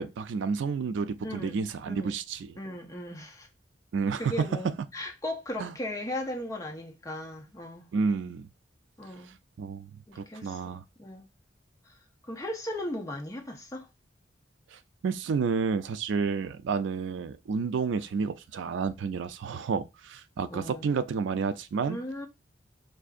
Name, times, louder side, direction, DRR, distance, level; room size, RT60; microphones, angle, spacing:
voice 1, 0.0-2.5 3.9-4.5 5.6-5.7 7.9-8.5 9.6-9.9 10.2-10.8 14.7-22.0, right 5 dB, 85° right, 0.3 m, -30 dB
voice 2, 1.2-2.2 2.6-3.5 4.2-7.8 9.0-9.4 10.1-11.3 11.8-11.9 12.2-13.9 20.5-20.9 21.9-22.3, left 1 dB, 15° left, 0.6 m, -37 dB
4.6 x 2.5 x 2.4 m
head